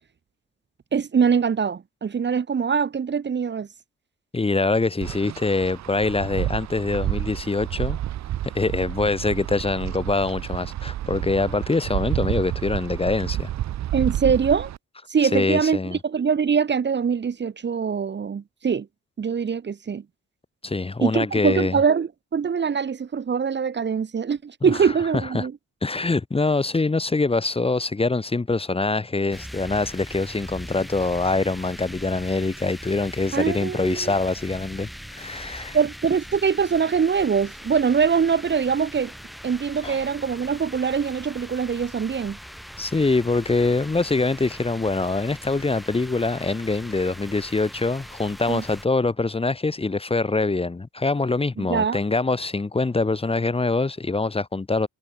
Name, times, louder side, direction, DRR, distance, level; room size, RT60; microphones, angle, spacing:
voice 1, 0.9-3.7 13.9-14.7 15.1-18.9 19.2-20.0 21.0-25.5 33.3-34.1 35.7-39.1 39.4-42.4 48.5-48.6 51.6-52.0, right 6 dB, 35° right, 1.3 m, -23 dB
voice 2, 4.3-8.0 8.5-13.5 15.3-16.0 20.6-21.8 24.7-24.9 25.3-25.5 25.8-34.9 35.2-35.8 39.8-40.0 42.8-54.9, left 3 dB, 20° left, 1.5 m, -24 dB
Wind, 5.0-14.8, right 12 dB, 65° right, 0.9 m, -30 dB
sound 1, 29.3-48.9, equal, ahead, 1.3 m, -41 dB
cardioid pair, 90°, 30 cm